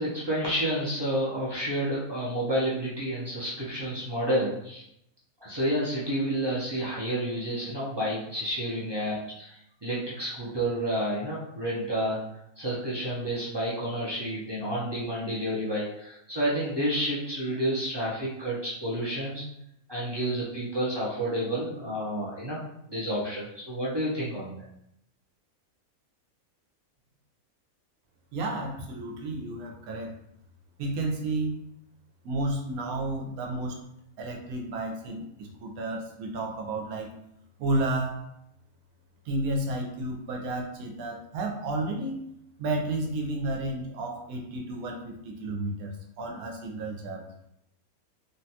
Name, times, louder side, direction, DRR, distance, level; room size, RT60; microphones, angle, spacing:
voice 1, 0.0-4.8 5.4-12.2 12.6-19.4 19.9-22.6 22.9-24.6, right 1 dB, 35° right, -8 dB, 0.4 m, -30 dB
voice 2, 28.3-30.1 30.8-31.5 32.2-33.8 34.2-37.1 37.6-38.2 39.3-42.2 42.6-47.2, right 2 dB, 80° right, 2 dB, 1.1 m, -31 dB
3.4 x 2.2 x 2.7 m, 0.77 s
omnidirectional pair, 1.5 m